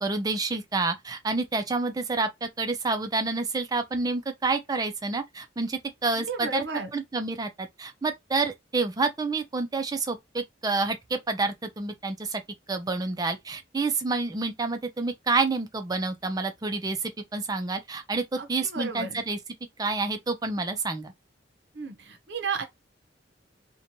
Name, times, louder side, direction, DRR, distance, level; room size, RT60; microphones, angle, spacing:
voice 1, 0.0-6.7 6.9-12.4 12.7-19.4 19.8-21.1, right 3 dB, 20° right, 0.4 m, -28 dB
voice 2, 6.2-6.9 18.4-19.2 21.7-22.6, right 4 dB, 65° right, 0.6 m, -33 dB
2.9 x 2.2 x 2.6 m
head